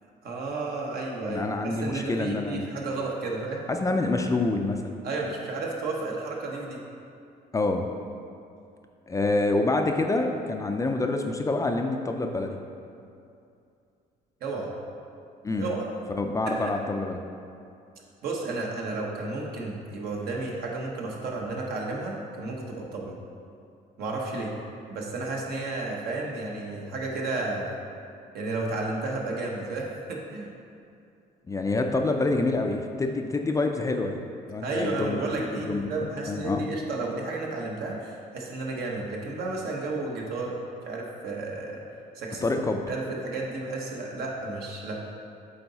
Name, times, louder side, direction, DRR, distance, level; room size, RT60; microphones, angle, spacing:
voice 1, 0.2-3.6 5.0-6.8 14.4-14.7 15.6-15.8 16.4-16.7 18.2-23.2 24.0-24.5 24.9-27.8 28.3-30.5 34.6-40.6 40.9-41.8 42.1-42.4 42.9-45.0, right 3 dB, 65° right, -1 dB, 1.2 m, -32 dB
voice 2, 1.2-2.7 3.7-5.0 7.5-7.9 9.1-12.6 15.4-15.7 16.1-17.2 31.5-35.2 35.5-35.9 36.3-36.7 42.4-42.8, left 2 dB, 20° left, 4 dB, 0.4 m, -27 dB
8.1 x 4.0 x 4.1 m, 2.5 s
cardioid pair, 110°, 17 cm